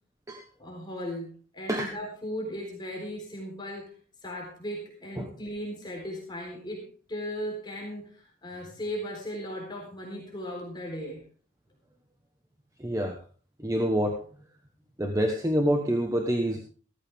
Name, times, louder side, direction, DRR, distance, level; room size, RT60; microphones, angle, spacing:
voice 1, 0.6-3.9 4.2-11.2, equal, 20° left, -1 dB, 3.9 m, -37 dB
voice 2, 12.8-13.2 13.6-14.2 15.0-16.6, equal, 15° right, 4 dB, 1.2 m, -26 dB
15.0 x 14.0 x 3.6 m, 0.40 s
head